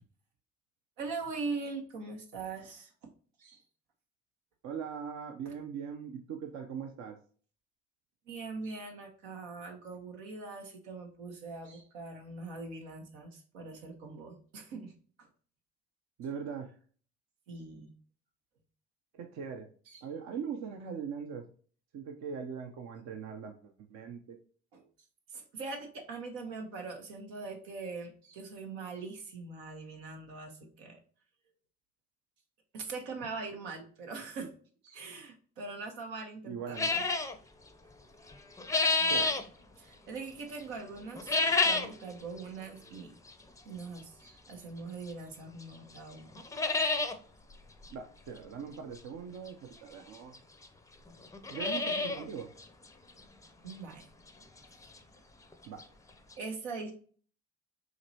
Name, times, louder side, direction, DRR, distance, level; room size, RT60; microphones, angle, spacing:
voice 1, 1.0-2.9 3.4-3.6 5.4-5.5 8.3-14.9 15.2-15.3 17.5-17.9 19.9-20.0 24.7-24.9 25.3-31.0 32.7-34.5 34.8-37.0 39.0-39.3 39.8-41.4 41.6-43.1 43.6-46.3 53.6-54.1 56.4-56.9, right 4 dB, 80° right, 3 dB, 1.1 m, -42 dB
voice 2, 4.6-7.2 16.2-16.7 19.2-19.7 20.0-21.5 21.9-24.4 36.5-37.1 39.1-39.3 47.9-50.4 51.5-52.5 55.7-55.8, right 6 dB, 55° right, 5 dB, 0.7 m, -41 dB
sound 1, 36.8-37.3 38.3-39.4 41.1-42.0 42.4-42.5 43.3-43.4 45.1-45.2 45.6-45.7 46.0-46.1 46.3-47.1 47.5-47.6 47.8-47.9 49.5-49.6 50.3-50.4 50.6-50.7 51.2-52.2 52.6-52.7 53.2-53.3 53.7-53.8 55.5-55.6 55.8-55.9 56.3-56.4, left 3 dB, 10° left, 0.5 m, -29 dB
5.1 x 3.0 x 2.8 m, 0.43 s
hypercardioid pair, 60°, 33 cm